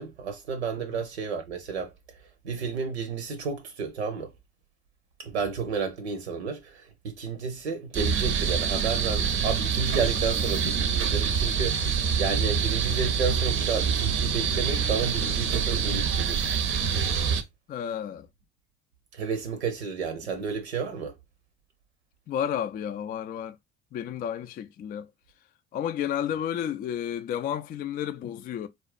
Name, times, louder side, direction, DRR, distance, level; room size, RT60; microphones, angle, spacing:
voice 1, 0.0-1.9 2.4-4.3 5.2-16.5 17.2-17.4 19.1-21.1, right 5 dB, 80° right, 0.7 m, -31 dB
sound 1, 7.9-17.4, right 6 dB, 40° right, 0.6 m, -26 dB
voice 2, 17.7-18.3 22.3-23.6 23.9-25.1 25.7-28.7, left 9 dB, 30° left, 0.4 m, -31 dB
4.1 x 2.4 x 2.3 m
figure-of-eight pair, 55°, 32 cm